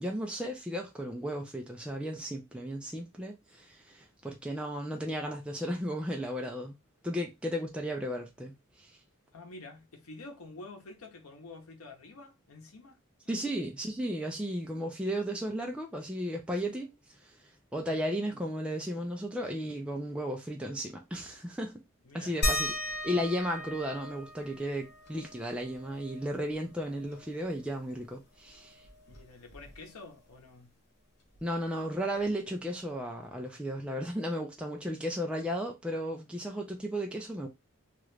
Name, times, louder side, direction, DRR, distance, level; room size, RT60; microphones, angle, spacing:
voice 1, 0.0-6.8 7.0-9.0 13.3-17.4 17.7-21.8 22.1-22.7 23.0-28.9 31.4-37.5, equal, 5° right, 0.4 m, -34 dB
voice 2, 9.3-13.0 13.2-13.3 22.0-22.3 23.2-23.3 29.1-30.7, left 2 dB, 80° left, 0.8 m, -48 dB
sound 1, 22.4-27.6 27.9-28.0 28.3-30.1 31.4-31.5 32.2-32.3, left 1 dB, 50° left, 0.9 m, -37 dB
2.9 x 2.4 x 3.2 m
head